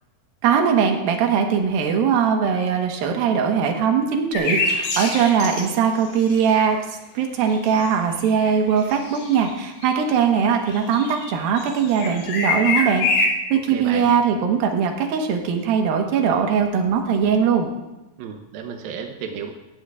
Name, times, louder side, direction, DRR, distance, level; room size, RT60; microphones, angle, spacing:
voice 1, 0.4-17.7, right 7 dB, 65° right, 3 dB, 2.5 m, -21 dB
sound 1, 4.3-5.7 6.3-6.4 7.5-8.0 8.3-9.5 9.8-9.9 10.3-13.3, left 3 dB, 75° left, 4.7 m, -25 dB
voice 2, 13.7-14.1 18.2-19.5, right 7 dB, 85° right, 3 dB, 2.1 m, -33 dB
18.5 x 14.5 x 2.5 m, 1.0 s
omnidirectional pair, 5.5 m